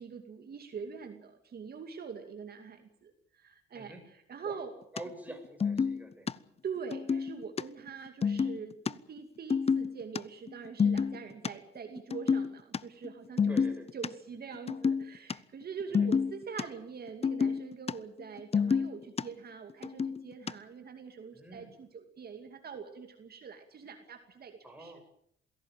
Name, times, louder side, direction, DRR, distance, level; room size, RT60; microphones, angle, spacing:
voice 1, 0.0-4.7 6.6-13.6 13.9-24.9, right 6 dB, 50° right, 6 dB, 2.6 m, -44 dB
voice 2, 4.9-6.3 11.3-11.4 13.5-13.9 15.9-16.1 21.3-21.7 24.6-25.0, right 1 dB, 10° right, 4 dB, 6.7 m, -46 dB
sound 1, 5.0-5.1 5.3-5.4 5.6-6.3 6.9-7.6 7.9-8.0 8.2-8.9 9.5-10.2 10.5-11.5 12.0-12.8 13.0-13.1 13.4-14.1 14.5-15.3 15.6-16.6 17.1-17.9 18.2-19.2 19.7-20.5, left 6 dB, 30° left, 0.8 m, -28 dB
21.5 x 17.0 x 9.1 m, 0.72 s
cardioid pair, 90°, 20 cm